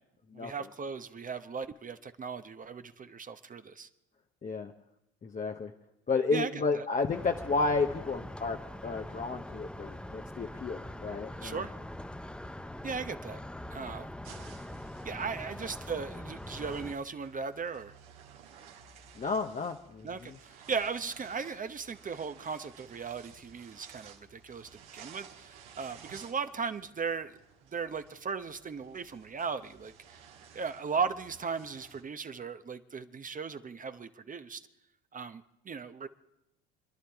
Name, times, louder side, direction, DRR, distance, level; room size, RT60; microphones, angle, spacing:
voice 1, 0.3-3.9 6.3-6.8 11.4-11.7 12.8-13.4 13.7-14.1 15.0-17.9 20.0-27.4 27.7-30.2 30.5-34.6 35.1-36.1, right 5 dB, 25° right, 9 dB, 0.8 m, -37 dB
voice 2, 4.4-4.7 5.2-5.7 6.1-11.6 19.2-20.4, left 4 dB, 25° left, 4 dB, 0.9 m, -32 dB
sound 1, 7.1-16.9, left 1 dB, 5° left, 0.5 m, -43 dB
sound 2, 14.2-32.0, right 7 dB, 85° right, 1.8 m, -55 dB
29.0 x 11.0 x 3.5 m, 0.85 s
hypercardioid pair, 75°, 33 cm